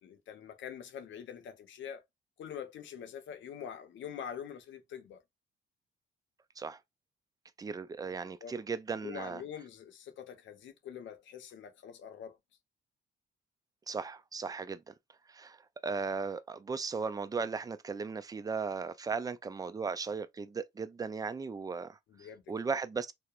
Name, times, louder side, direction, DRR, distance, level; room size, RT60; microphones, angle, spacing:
voice 1, 0.0-2.0 2.4-5.2 8.4-8.6 9.0-12.4 22.1-22.4, left 8 dB, 70° left, 0.7 m, -45 dB
voice 2, 7.6-9.4 13.9-14.9 15.3-23.1, right 5 dB, 20° right, 0.3 m, -37 dB
2.8 x 2.1 x 2.4 m
cardioid pair, 90°, 20 cm